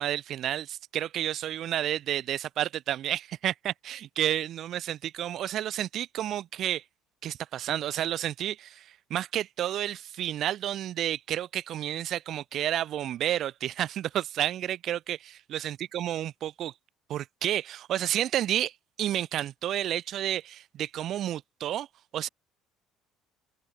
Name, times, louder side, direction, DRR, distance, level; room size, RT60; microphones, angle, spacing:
voice 1, 0.0-6.8 7.2-16.7 17.1-18.7 19.0-21.9 22.1-22.3, right 11 dB, 50° right, 0.4 m, -31 dB
open air
figure-of-eight pair, 55°, 0 cm